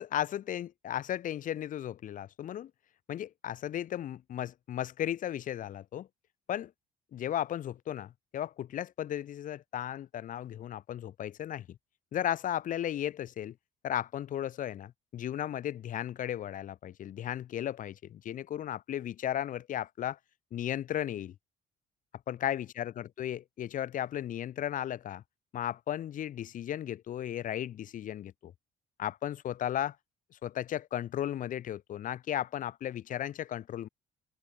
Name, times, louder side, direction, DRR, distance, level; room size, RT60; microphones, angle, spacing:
voice 1, 0.0-2.7 3.1-6.1 6.5-6.7 7.1-11.7 12.1-13.5 13.8-20.2 20.5-21.3 22.3-25.2 25.5-28.5 29.0-30.0 30.4-33.9, left 11 dB, 50° left, 0.8 m, -35 dB
cardioid pair, 110°, 17 cm